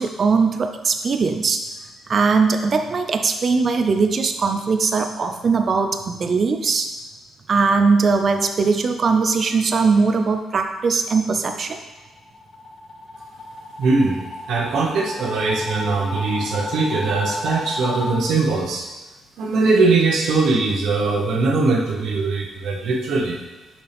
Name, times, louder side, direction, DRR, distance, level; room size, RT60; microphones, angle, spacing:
voice 1, 0.0-1.6 2.1-6.9 7.5-11.8, right 4 dB, 45° right, 6 dB, 0.5 m, -20 dB
sound 1, 12.0-18.1, left 2 dB, 40° left, 1.1 m, -32 dB
voice 2, 13.8-18.8 19.4-23.4, right 3 dB, 75° right, -1 dB, 1.1 m, -21 dB
5.7 x 5.6 x 3.4 m, 1.2 s
cardioid pair, 90°, 0 cm